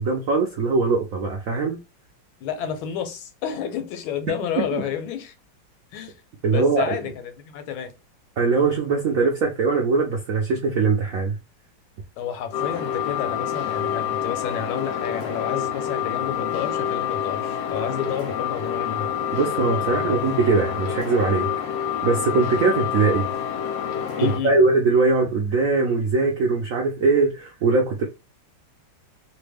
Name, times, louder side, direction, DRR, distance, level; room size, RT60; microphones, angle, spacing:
voice 1, 0.0-1.8 4.6-4.9 6.4-7.0 8.4-11.4 19.3-21.5 22.0-23.3 24.2-28.1, right 4 dB, 75° right, 0.7 m, -21 dB
voice 2, 2.4-5.3 5.9-6.1 6.5-7.9 12.2-19.1 19.8-20.3 24.2-24.6, left 8 dB, 90° left, 1.5 m, -30 dB
sound 1, 12.5-24.4, left 9 dB, 70° left, 1.0 m, -27 dB
3.3 x 2.2 x 3.3 m
omnidirectional pair, 2.2 m